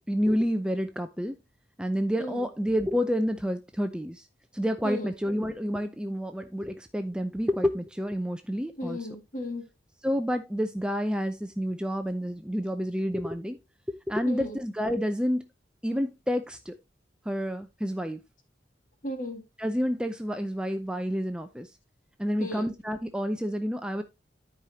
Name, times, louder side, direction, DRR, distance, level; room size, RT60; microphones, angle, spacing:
voice 1, 0.1-1.3 1.8-4.3 4.5-9.0 10.0-13.6 14.1-15.5 15.8-16.7 17.3-18.2 19.6-21.7 22.2-24.0, equal, 5° right, 0.5 m, -29 dB
voice 2, 8.8-9.7 14.2-14.6 19.0-19.4 22.4-22.7, left 1 dB, 45° left, 1.8 m, -35 dB
13.0 x 5.0 x 2.8 m
head